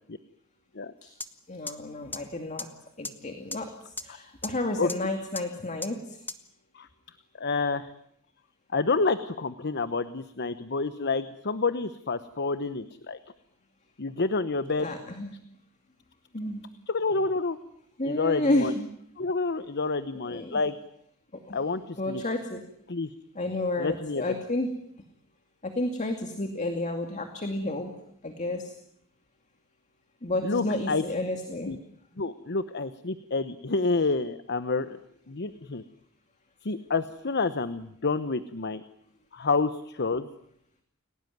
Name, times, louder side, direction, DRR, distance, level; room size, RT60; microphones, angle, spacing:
sound 1, 1.2-1.3 1.7-1.8 2.1-2.2 2.6-2.7 3.0-3.1 3.5-3.6 4.0-4.1 4.4-4.5 4.9-5.0 5.4-5.5 5.8-5.9 6.3-6.4, left 3 dB, 10° left, 1.4 m, -33 dB
voice 1, 1.5-2.7 3.0-6.2 14.8-15.3 16.3-16.6 18.0-18.9 20.3-20.6 21.3-21.6 22.0-22.6 23.4-24.7 25.6-27.9 28.2-28.7 30.2-31.7, left 1 dB, 35° left, 5 dB, 2.4 m, -31 dB
voice 2, 7.4-7.9 8.7-13.2 14.0-14.9 16.9-17.6 18.0-18.7 19.2-20.7 21.5-22.2 22.9-23.1 23.8-24.3 30.4-31.0 31.7-31.8 32.2-35.0 35.3-35.8 36.6-38.8 39.3-40.3, left 3 dB, 50° left, 13 dB, 1.0 m, -28 dB
29.5 x 18.5 x 9.4 m, 0.73 s
head